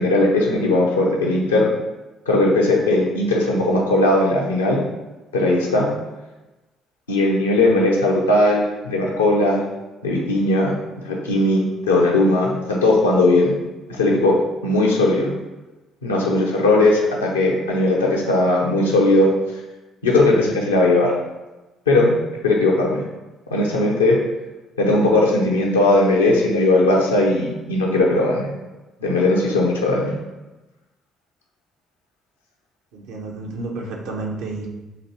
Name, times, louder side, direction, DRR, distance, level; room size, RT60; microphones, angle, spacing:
voice 1, 0.0-1.7 2.3-4.8 5.3-5.9 7.1-9.6 10.0-10.7 11.0-13.5 14.0-15.3 16.0-19.3 20.0-21.1 21.9-22.1 22.4-23.0 23.5-24.2 24.8-28.5 29.0-30.1, left 2 dB, 85° left, -2 dB, 0.6 m, -18 dB
voice 2, 32.9-34.7, right 2 dB, 65° right, 1 dB, 0.6 m, -30 dB
3.1 x 2.5 x 4.3 m, 1.1 s
figure-of-eight pair, 45°, 0 cm